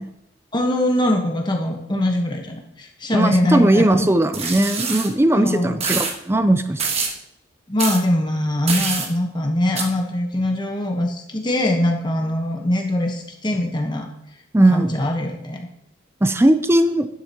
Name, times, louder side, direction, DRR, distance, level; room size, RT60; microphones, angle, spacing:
voice 1, 0.5-4.1 5.3-5.8 7.7-14.1 14.7-15.6, left 1 dB, 25° left, 2 dB, 1.1 m, -22 dB
voice 2, 3.1-6.8 14.5-14.9 16.2-17.1, right 1 dB, 15° right, 9 dB, 0.4 m, -18 dB
sound 1, 4.3-5.1 5.8-6.1 6.8-7.1 7.8-8.0 8.7-9.1 9.8-9.9, right 5 dB, 35° right, 1.3 m, -24 dB
12.0 x 10.0 x 2.9 m, 0.80 s
head